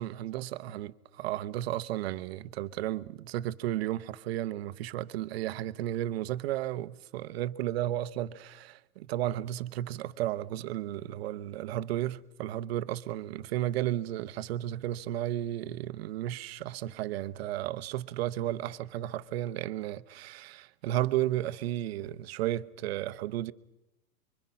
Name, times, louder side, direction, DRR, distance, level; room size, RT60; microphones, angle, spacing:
voice 1, 0.0-23.5, right 13 dB, 45° right, 0.8 m, -33 dB
25.0 x 24.0 x 5.7 m
hypercardioid pair, 155°, 44 cm